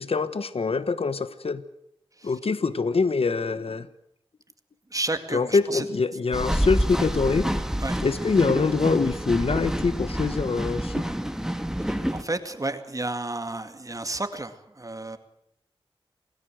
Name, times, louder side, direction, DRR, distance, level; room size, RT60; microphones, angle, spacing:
voice 1, 0.0-1.6 2.2-3.9 5.3-7.5 8.0-11.1, left 4 dB, 80° left, 14 dB, 1.2 m, -24 dB
voice 2, 4.9-5.9 7.8-8.0 11.8-15.2, right 2 dB, 35° right, 9 dB, 2.2 m, -32 dB
sound 1, 6.3-12.2, equal, 5° right, 2.0 m, -28 dB
27.5 x 18.0 x 7.8 m, 0.73 s
wide cardioid pair, 65°, 10 cm